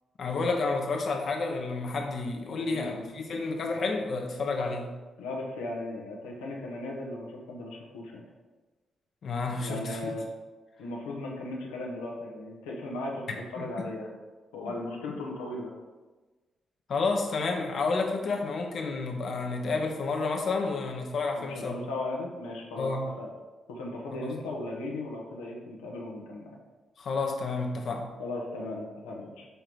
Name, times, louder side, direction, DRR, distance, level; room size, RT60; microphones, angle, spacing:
voice 1, 0.2-4.9 9.2-10.1 13.6-13.9 14.6-14.7 16.9-21.8 22.8-23.1 24.2-24.3 27.0-28.1, left 3 dB, 60° left, 2 dB, 1.0 m, -30 dB
voice 2, 2.7-3.0 5.2-8.2 9.6-10.3 10.8-14.1 14.5-15.7 21.3-22.9 23.2-23.3 23.7-26.6 28.2-29.5, left 2 dB, 90° left, -1 dB, 1.1 m, -37 dB
6.8 x 3.8 x 4.6 m, 1.2 s
hypercardioid pair, 50°, 0 cm